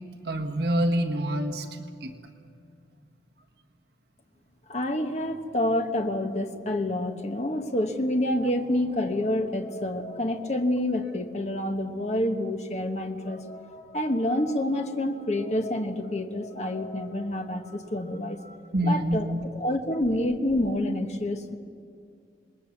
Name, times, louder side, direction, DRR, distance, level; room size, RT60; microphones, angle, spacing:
voice 1, 0.2-2.1 18.7-19.4, right 1 dB, 65° right, 3 dB, 1.5 m, -26 dB
voice 2, 4.7-18.6 18.8-19.3 19.5-21.6, left 1 dB, 40° left, 5 dB, 1.3 m, -28 dB
27.0 x 20.0 x 7.3 m, 2.4 s
head